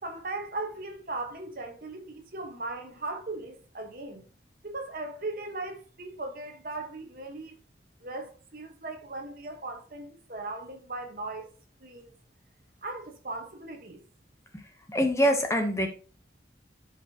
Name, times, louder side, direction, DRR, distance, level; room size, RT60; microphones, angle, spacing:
voice 1, 0.0-4.2 4.6-7.6 8.0-11.5 11.8-12.1 12.8-14.0, right 2 dB, 50° right, 1.3 m, -38 dB
voice 2, 14.9-15.9, equal, 15° left, 0.9 m, -24 dB
11.5 x 5.1 x 2.9 m
head